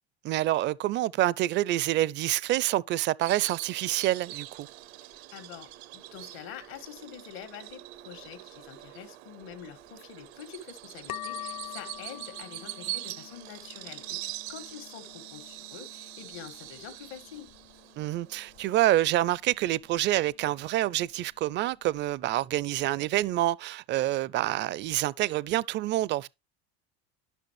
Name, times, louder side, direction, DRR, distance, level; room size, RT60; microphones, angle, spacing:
voice 1, 0.2-4.7 18.0-26.3, right 15 dB, 35° right, 0.4 m, -27 dB
Bird vocalization bird call bird song, 3.2-19.2, right 17 dB, 75° right, 0.6 m, -43 dB
sound 1, 3.9-22.5, left 15 dB, 50° left, 0.9 m, -49 dB
voice 2, 5.0-17.5, left 8 dB, 75° left, 2.2 m, -46 dB
12.0 x 5.9 x 3.2 m
hypercardioid pair, 95°, 32 cm